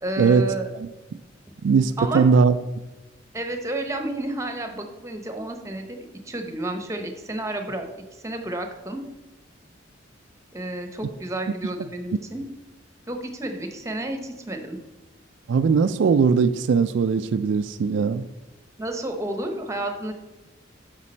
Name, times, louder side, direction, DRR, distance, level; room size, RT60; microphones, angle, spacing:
voice 1, 0.0-0.7 2.0-2.3 3.3-7.9 8.2-9.0 10.5-12.4 13.1-14.8 18.8-20.1, right 1 dB, 15° right, 0.8 m, -31 dB
voice 2, 1.6-2.6 15.5-18.3, right 5 dB, 70° right, 0.3 m, -19 dB
8.3 x 6.0 x 4.3 m
head